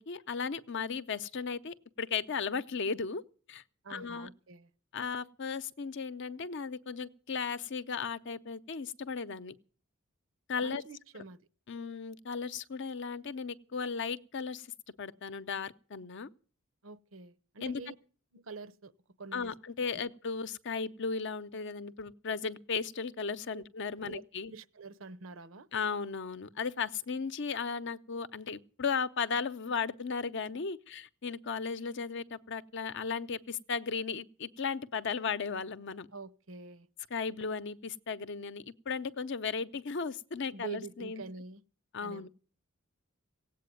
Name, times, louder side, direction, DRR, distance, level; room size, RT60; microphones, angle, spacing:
voice 1, 0.0-3.2 3.5-3.6 3.9-4.3 4.9-9.5 10.5-10.8 11.7-14.7 15.0-16.3 17.6-17.8 19.3-24.5 25.7-36.1 37.1-41.2 41.9-42.3, left 5 dB, 60° left, 0.7 m, -36 dB
voice 2, 3.8-4.7 10.6-11.4 16.8-17.9 18.3-18.9 19.2-19.5 19.9-20.0 23.5-23.6 24.0-24.2 24.5-25.7 36.1-36.9 40.5-41.6 42.0-42.3, right 4 dB, 70° right, 0.8 m, -46 dB
17.0 x 8.4 x 9.1 m
head